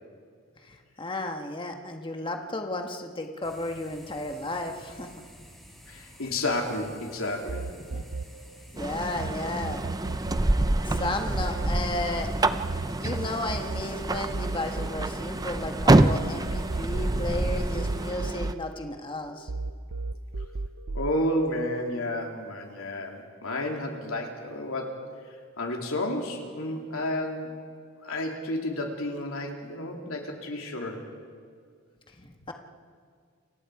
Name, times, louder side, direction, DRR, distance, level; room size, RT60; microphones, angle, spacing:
voice 1, 0.6-5.1 7.8-8.1 8.7-9.8 10.8-12.3 12.9-19.5 32.2-32.5, left 2 dB, 25° left, 4 dB, 1.6 m, -33 dB
sound 1, 3.4-18.1, equal, ahead, 5.2 m, -51 dB
voice 2, 5.9-7.7 20.9-25.0 25.2-27.5 28.0-31.0, left 1 dB, 85° left, 1 dB, 3.2 m, -31 dB
sound 2, 7.5-9.3 9.6-16.2 16.5-19.2 19.5-21.1, right 3 dB, 70° right, 0.6 m, -35 dB
sound 3, 8.8-18.5, right 2 dB, 20° right, 0.5 m, -27 dB
29.5 x 24.0 x 4.9 m, 2.1 s
head